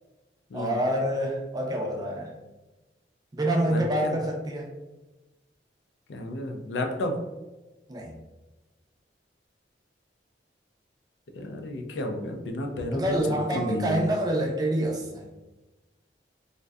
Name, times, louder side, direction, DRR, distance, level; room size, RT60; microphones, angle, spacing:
voice 1, 0.5-2.3 3.3-4.7 7.9-8.2 12.9-15.3, right 1 dB, 20° right, 0 dB, 0.3 m, -27 dB
voice 2, 3.7-4.2 6.1-7.2 11.4-14.0, left 1 dB, 75° left, 4 dB, 0.4 m, -32 dB
2.5 x 2.1 x 2.3 m, 1.1 s
head